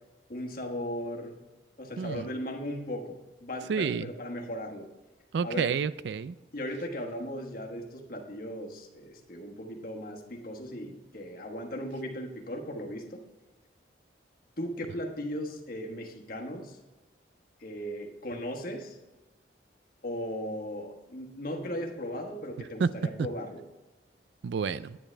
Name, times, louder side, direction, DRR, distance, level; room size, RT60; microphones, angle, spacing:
voice 1, 0.3-1.3 1.8-4.9 5.4-5.8 6.5-13.2 14.6-16.8 17.6-19.0 20.0-23.6, equal, 50° left, 2 dB, 1.4 m, -37 dB
voice 2, 3.7-4.1 5.3-6.4 22.8-22.9 23.2-23.3 24.4-25.0, right 6 dB, 65° right, 16 dB, 0.3 m, -29 dB
9.9 x 9.7 x 3.3 m, 1.1 s
head